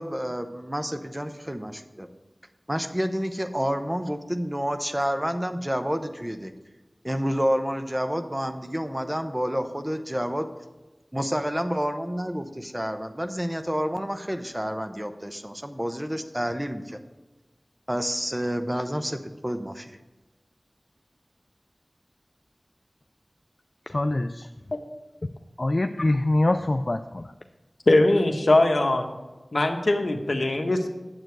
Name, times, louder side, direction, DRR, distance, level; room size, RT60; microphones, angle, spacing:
voice 1, 0.0-2.1 2.7-6.5 7.0-10.5 11.1-17.0 17.9-20.0, equal, 15° right, 7 dB, 0.8 m, -29 dB
voice 2, 23.9-24.5 25.6-27.3, left 2 dB, 50° left, 7 dB, 0.4 m, -24 dB
voice 3, 27.9-29.1 29.5-30.9, left 2 dB, 75° left, 4 dB, 1.1 m, -21 dB
9.1 x 7.7 x 4.7 m, 1.1 s
wide cardioid pair, 50°, 0 cm